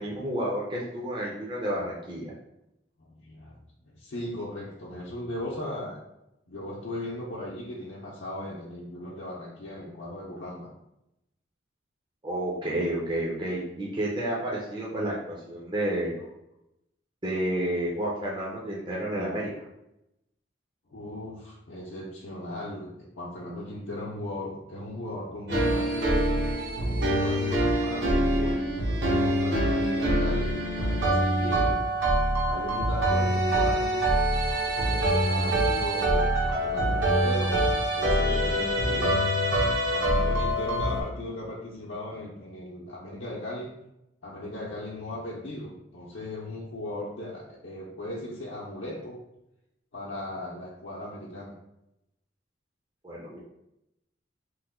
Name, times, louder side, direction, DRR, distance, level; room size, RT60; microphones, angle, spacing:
voice 1, 0.0-2.3 12.2-16.1 17.2-19.5 53.0-53.4, right 1 dB, 25° right, -5 dB, 0.5 m, -30 dB
voice 2, 3.0-3.6 3.9-6.0 6.5-10.7 16.2-16.3 20.9-26.1 26.8-31.8 32.4-34.0 34.7-39.2 39.8-43.7 44.2-49.2 49.9-51.5, left 1 dB, 90° left, -6 dB, 0.6 m, -37 dB
sound 1, 25.5-41.0, right 1 dB, 60° right, 0.7 m, -25 dB
3.0 x 2.1 x 3.5 m, 0.86 s
head